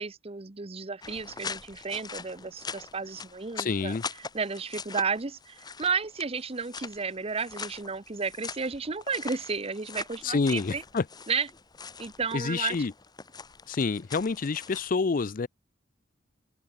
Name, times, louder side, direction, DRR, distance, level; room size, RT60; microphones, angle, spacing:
voice 1, 0.0-4.0 4.3-10.8 11.3-11.5 12.0-12.8, right 5 dB, 30° right, 0.9 m, -32 dB
sound 1, 1.0-14.9, left 5 dB, 20° left, 1.0 m, -43 dB
voice 2, 3.6-4.0 10.2-11.0 12.3-12.9 13.7-15.5, left 4 dB, 50° left, 0.5 m, -28 dB
open air
head